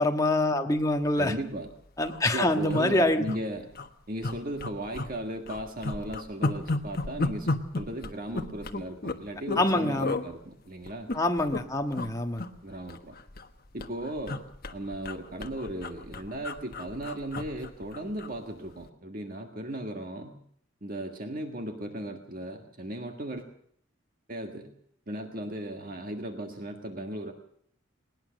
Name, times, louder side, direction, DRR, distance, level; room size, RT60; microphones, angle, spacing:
voice 1, 0.0-1.3 2.0-3.2 9.6-10.2 11.1-12.5, left 2 dB, 15° left, 4 dB, 1.5 m, -25 dB
sound 1, 1.2-1.4 1.7-1.8 2.0-2.2 2.7-3.4 3.7-3.9 4.2-5.1 5.5-9.7 10.0-10.2 10.9-11.6 11.9-12.1 12.4-13.5 13.8-18.3 18.7-18.9, left 2 dB, 45° left, 1.3 m, -33 dB
voice 2, 1.2-1.7 2.3-3.7 4.1-11.1 12.6-13.2 13.7-14.4 14.7-20.4 20.8-23.4 24.3-24.7 25.1-27.3, right 1 dB, 40° right, 4 dB, 1.7 m, -36 dB
20.5 x 19.5 x 6.5 m, 0.63 s
head